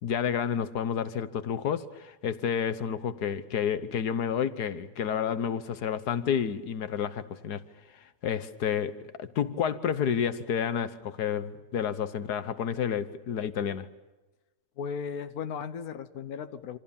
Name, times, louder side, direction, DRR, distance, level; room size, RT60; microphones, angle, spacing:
voice 1, 0.0-7.6 7.9-13.9, left 8 dB, 85° left, 1.6 m, -30 dB
voice 2, 14.8-16.8, left 6 dB, 70° left, 1.5 m, -36 dB
27.5 x 26.5 x 7.1 m
omnidirectional pair, 1.6 m